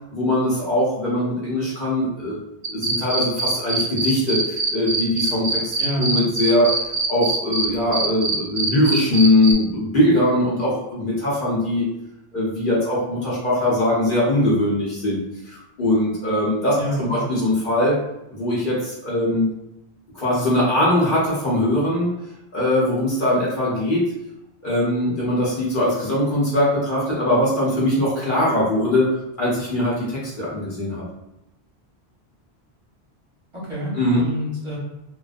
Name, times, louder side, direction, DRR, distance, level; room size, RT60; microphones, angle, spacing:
voice 1, 0.1-2.4 2.7-6.7 7.1-11.8 12.3-18.0 18.3-19.5 20.1-22.1 22.5-24.0 24.6-29.1 29.4-31.0 34.0-34.2, left 1 dB, 55° left, -7 dB, 1.0 m, -21 dB
sound 1, 2.6-7.7 7.9-9.5, right 3 dB, 75° right, 0.8 m, -23 dB
voice 2, 5.8-6.1 16.8-17.3 33.6-34.8, equal, 30° right, -9 dB, 0.8 m, -27 dB
2.4 x 2.1 x 2.4 m, 0.88 s
omnidirectional pair, 1.1 m